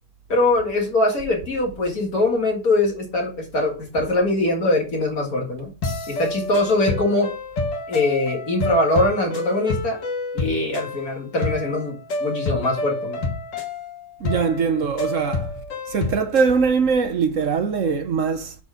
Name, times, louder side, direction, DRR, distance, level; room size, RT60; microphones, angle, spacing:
voice 1, 0.3-5.7 6.1-7.3 7.9-10.0 10.3-12.0 12.2-13.2, left 2 dB, 50° left, 2.4 m, -22 dB
sound 1, 5.8-16.5, left 3 dB, 70° left, 2.2 m, -29 dB
voice 2, 14.2-15.5 15.9-18.5, right 5 dB, 55° right, 1.0 m, -21 dB
7.1 x 4.3 x 4.9 m
omnidirectional pair, 2.0 m